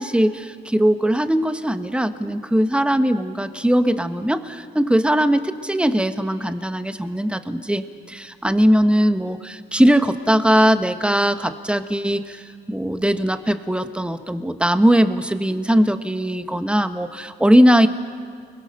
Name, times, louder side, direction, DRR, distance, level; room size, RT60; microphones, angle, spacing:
voice 1, 0.0-17.9, equal, 5° right, 9 dB, 1.4 m, -20 dB
30.0 x 22.5 x 6.8 m, 2.1 s
cardioid pair, 90°, 20 cm